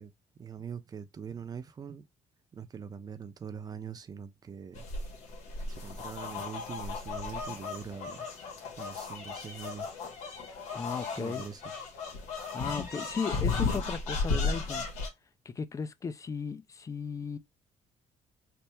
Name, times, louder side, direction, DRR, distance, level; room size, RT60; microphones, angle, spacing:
voice 1, 0.0-2.1 2.5-4.9 5.7-8.3 8.7-9.9 11.0-11.7, right 7 dB, 30° right, 0.6 m, -43 dB
sound 1, 4.7-15.1, left 4 dB, 85° left, 1.4 m, -35 dB
voice 2, 10.5-11.4 12.5-14.9 15.5-17.4, left 5 dB, 25° left, 0.4 m, -36 dB
3.4 x 2.1 x 4.3 m
cardioid pair, 100°, 12 cm